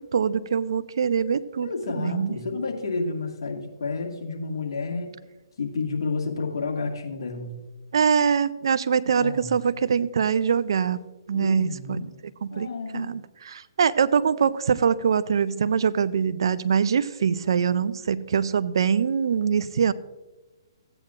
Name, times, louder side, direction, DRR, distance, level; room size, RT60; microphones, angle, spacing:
voice 1, 0.0-2.3 7.9-11.0 11.3-12.0 12.4-12.7 12.9-13.2 13.5-19.9, right 7 dB, 65° right, 16 dB, 0.5 m, -23 dB
voice 2, 1.6-5.2 5.6-7.6 9.2-9.5 11.3-12.1 12.5-13.1, left 3 dB, 70° left, 1 dB, 1.9 m, -30 dB
15.5 x 8.8 x 2.5 m, 1.1 s
hypercardioid pair, 140°, 3 cm